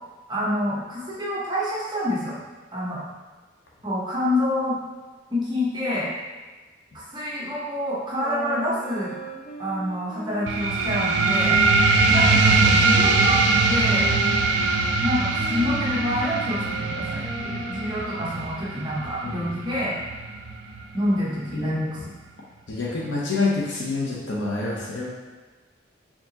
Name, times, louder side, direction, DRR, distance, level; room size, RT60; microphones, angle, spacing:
voice 1, 0.3-2.4 2.7-3.0 3.8-4.8 5.3-6.1 7.1-9.2 9.6-11.6 12.1-13.4 13.7-14.1 15.0-20.0 20.9-21.9, left 1 dB, 25° right, -7 dB, 0.8 m, -27 dB
sound 1, 8.2-14.9 15.3-18.3, equal, 35° left, 0.5 m, -38 dB
sound 2, 10.5-21.5, right 3 dB, 75° right, 0.4 m, -22 dB
voice 2, 21.5-21.9 22.7-25.1, left 3 dB, 70° left, -4 dB, 0.7 m, -26 dB
4.3 x 2.9 x 2.8 m, 1.3 s
head